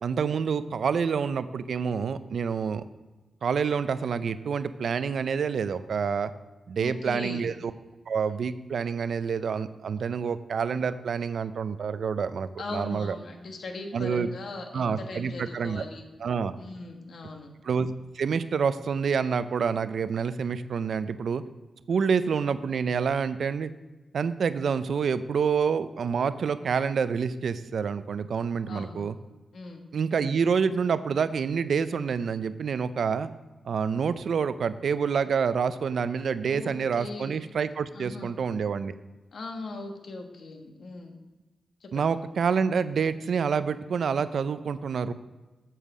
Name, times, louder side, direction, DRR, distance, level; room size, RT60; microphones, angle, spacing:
voice 1, 0.0-2.8 3.4-6.3 6.7-7.7 8.1-13.2 13.9-14.3 14.7-15.8 16.2-16.5 17.6-21.4 21.9-23.7 24.1-29.2 29.9-33.3 33.6-38.9 41.9-45.1, right 6 dB, 75° right, 13 dB, 0.5 m, -27 dB
voice 2, 6.8-7.5 12.6-16.0 16.6-17.5 28.7-29.0 29.5-29.8 36.4-37.4 37.9-38.3 39.3-41.1 41.8-42.1, left 3 dB, 70° left, 3 dB, 1.3 m, -39 dB
8.3 x 7.2 x 4.9 m, 1.1 s
cardioid pair, 85°, 0 cm